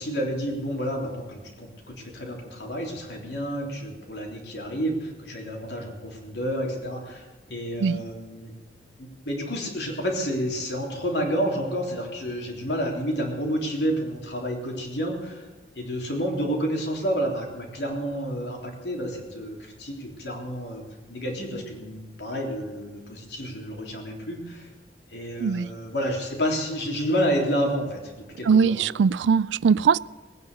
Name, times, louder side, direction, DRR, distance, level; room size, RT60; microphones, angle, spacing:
voice 1, 0.0-8.5 9.0-15.4 15.7-20.8 21.1-24.7 25.1-28.8, equal, 70° left, 3.5 m, -30 dB
voice 2, 28.5-30.0, right 6 dB, 85° right, 0.4 m, -20 dB
19.5 x 9.6 x 6.8 m
head